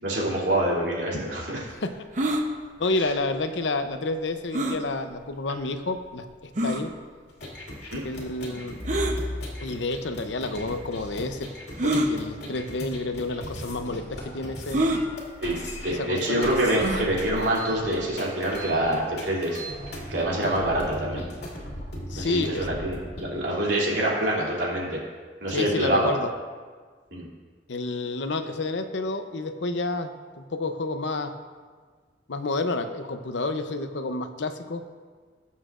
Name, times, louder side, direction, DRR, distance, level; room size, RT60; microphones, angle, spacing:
voice 1, 0.0-1.7 7.9-8.0 15.4-19.6 20.1-21.2 22.2-25.0 25.4-26.1 27.1-27.2, right 1 dB, 70° right, -4 dB, 3.0 m, -26 dB
sound 1, 2.1-2.4 4.5-4.8 5.6-5.7 6.6-6.8 8.8-9.2 10.2-10.3 11.8-12.1 13.0-13.2 13.4-13.5 14.7-15.0 16.7-17.1, right 1 dB, 45° right, 0.9 m, -25 dB
voice 2, 2.8-6.9 8.0-8.8 9.6-11.5 11.8-14.9 15.9-16.5 22.1-22.7 25.5-26.3 27.7-31.3 32.3-34.8, left 2 dB, 85° left, 8 dB, 0.7 m, -30 dB
sound 2, 7.3-23.2, left 1 dB, 65° left, 2.4 m, -37 dB
20.0 x 7.3 x 2.5 m, 1.5 s
head